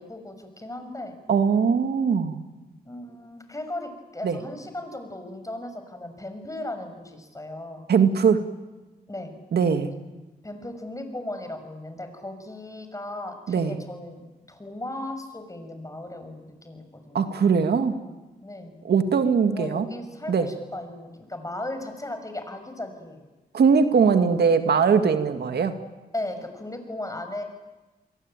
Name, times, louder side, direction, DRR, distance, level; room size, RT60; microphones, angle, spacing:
voice 1, 0.0-1.1 2.9-7.8 9.1-9.3 10.4-14.2 14.5-17.4 18.4-18.7 19.5-23.2 26.1-27.4, left 1 dB, 20° left, 7 dB, 6.4 m, -36 dB
voice 2, 1.3-2.4 4.2-4.4 7.9-8.4 9.5-9.9 13.5-13.8 17.1-18.0 18.8-19.9 20.3-20.5 23.5-25.7, right 6 dB, 75° right, 8 dB, 2.0 m, -21 dB
29.0 x 22.5 x 9.1 m, 1.1 s
cardioid pair, 65°, 17 cm